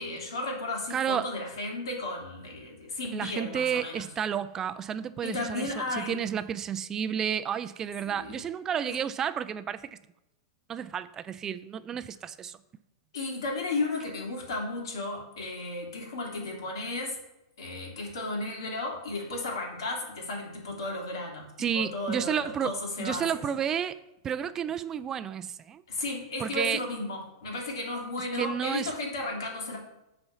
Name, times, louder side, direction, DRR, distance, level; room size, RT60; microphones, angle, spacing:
voice 1, 0.0-4.0 5.2-6.2 8.0-8.4 8.9-9.0 13.1-17.2 17.6-23.4 25.9-29.8, left 2 dB, 80° left, 0 dB, 3.1 m, -34 dB
voice 2, 0.9-1.3 3.1-10.0 10.7-12.6 21.6-22.7 23.0-24.0 24.2-25.8 26.4-26.8 28.4-28.9, right 8 dB, 20° right, 13 dB, 0.3 m, -31 dB
8.0 x 4.4 x 7.0 m, 0.92 s
supercardioid pair, 145°, 2 cm